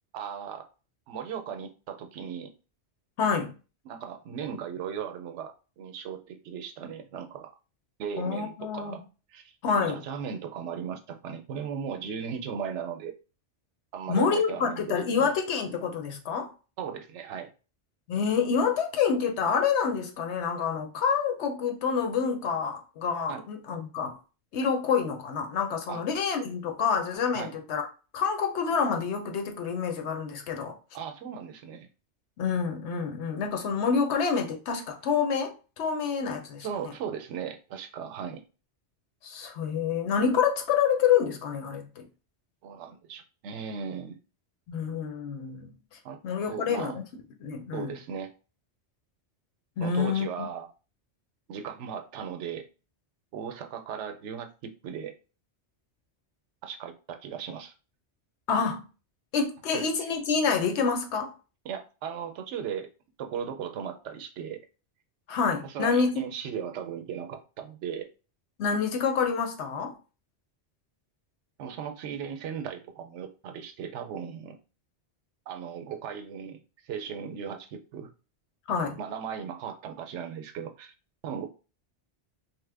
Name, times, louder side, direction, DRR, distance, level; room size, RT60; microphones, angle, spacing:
voice 1, 0.1-0.7 1.1-2.5 3.8-7.5 8.0-9.0 9.3-13.1 13.9-15.3 16.8-17.5 23.3-23.5 25.9-26.0 27.3-27.5 30.9-31.9 36.6-38.4 42.6-44.2 46.0-46.2 46.5-47.0 47.7-48.3 49.8-50.7 51.5-52.7 53.3-55.1 56.6-57.7 59.7-59.9 61.6-62.9 63.2-64.6 65.6-68.1 71.6-74.6 75.5-78.1 79.0-80.9 81.2-81.5, right 7 dB, 85° right, 0.9 m, -37 dB
voice 2, 3.2-3.5 8.2-9.0 9.6-10.0 14.1-16.5 18.1-24.1 24.5-27.9 28.1-30.7 32.4-36.7 39.2-42.1 44.7-45.7 46.2-46.9 47.4-47.9 49.8-50.5 58.5-58.8 59.3-61.3 65.3-66.2 68.6-69.9 78.7-79.0, left 6 dB, 75° left, 0.9 m, -27 dB
3.0 x 2.1 x 3.3 m
omnidirectional pair, 1.2 m